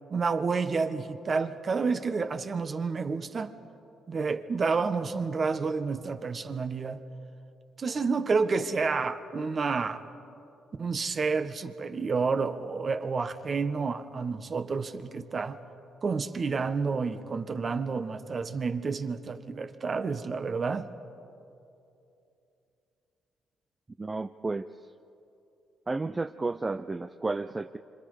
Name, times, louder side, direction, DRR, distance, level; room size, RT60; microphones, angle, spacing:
voice 1, 0.1-3.5 4.1-7.0 7.8-10.0 10.8-15.6 16.0-20.9, right 4 dB, 40° right, 1.3 m, -29 dB
voice 2, 24.0-24.7 25.9-27.8, right 3 dB, 20° right, 0.5 m, -32 dB
28.0 x 25.5 x 4.9 m
cardioid pair, 90°, 0 cm